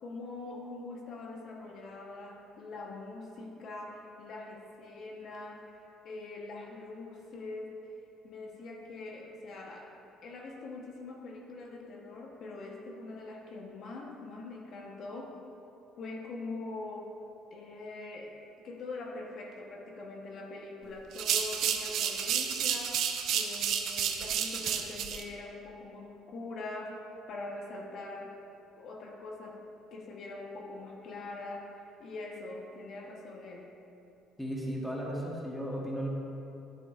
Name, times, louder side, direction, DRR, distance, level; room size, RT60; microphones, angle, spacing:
voice 1, 0.0-5.8 6.0-8.0 8.2-9.9 10.2-15.4 16.0-17.2 17.5-18.4 18.6-23.0 23.3-28.4 28.8-29.6 29.9-33.7, left 2 dB, 45° left, 0 dB, 0.9 m, -43 dB
sound 1, 21.1-25.2, right 8 dB, 55° right, 0.6 m, -31 dB
voice 2, 34.4-36.1, equal, 5° left, -3 dB, 1.0 m, -35 dB
11.0 x 9.1 x 2.4 m, 2.9 s
cardioid pair, 165°, 0 cm